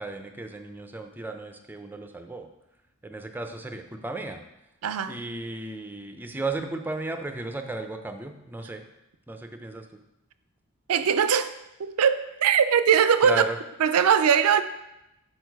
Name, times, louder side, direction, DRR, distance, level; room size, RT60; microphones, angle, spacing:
voice 1, 0.0-2.5 3.0-4.4 5.1-8.8 9.3-10.0 13.2-13.6, right 2 dB, 10° right, 6 dB, 0.5 m, -34 dB
voice 2, 4.8-5.2 10.9-11.5 11.8-13.4 13.8-14.6, right 7 dB, 80° right, 12 dB, 0.4 m, -21 dB
6.4 x 4.6 x 4.7 m, 0.91 s
head